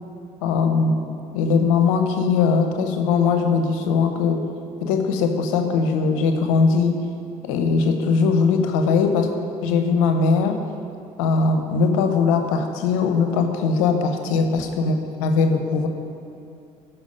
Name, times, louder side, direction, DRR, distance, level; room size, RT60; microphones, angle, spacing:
voice 1, 0.4-1.0 1.3-4.5 4.8-7.0 7.4-9.3 9.6-10.6 11.2-15.9, left 5 dB, 90° left, 6 dB, 0.9 m, -20 dB
13.5 x 5.7 x 5.3 m, 2.5 s
supercardioid pair, 65°, 16 cm